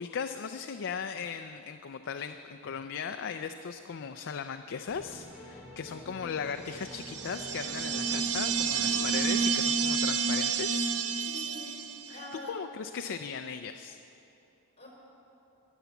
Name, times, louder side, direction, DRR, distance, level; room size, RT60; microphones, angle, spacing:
voice 1, 0.0-10.9 12.1-12.2 12.5-14.0, left 6 dB, 55° left, 7 dB, 0.5 m, -37 dB
sound 1, 4.9-10.4, equal, ahead, 3.2 m, -49 dB
voice 2, 5.8-6.3 8.8-9.2 11.2-12.5 14.8-14.9, left 2 dB, 30° left, -3 dB, 4.3 m, -46 dB
sound 2, 6.9-12.3, right 5 dB, 75° right, 0.8 m, -30 dB
22.0 x 8.2 x 7.2 m, 2.9 s
head